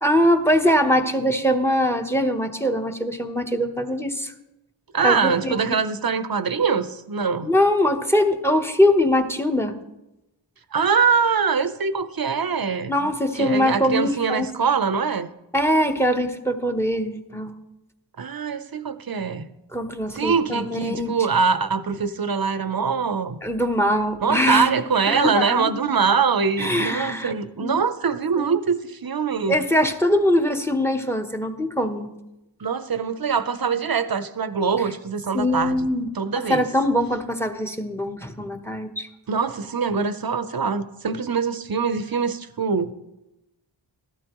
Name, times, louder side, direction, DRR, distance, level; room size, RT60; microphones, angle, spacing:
voice 1, 0.0-4.3 5.0-5.8 7.4-9.8 12.9-14.5 15.5-17.5 19.7-21.1 23.4-24.7 25.1-25.8 26.6-27.3 27.6-27.8 28.4-28.6 29.5-32.1 35.3-36.1 36.4-39.1, left 1 dB, 5° left, 7 dB, 1.0 m, -22 dB
voice 2, 4.9-7.5 10.7-13.0 13.4-15.3 18.2-19.5 20.1-23.4 24.2-29.6 32.6-35.9 36.2-36.6 39.3-42.9, right 5 dB, 50° right, 12 dB, 0.8 m, -23 dB
15.0 x 12.5 x 3.1 m, 0.94 s
wide cardioid pair, 45°, 45 cm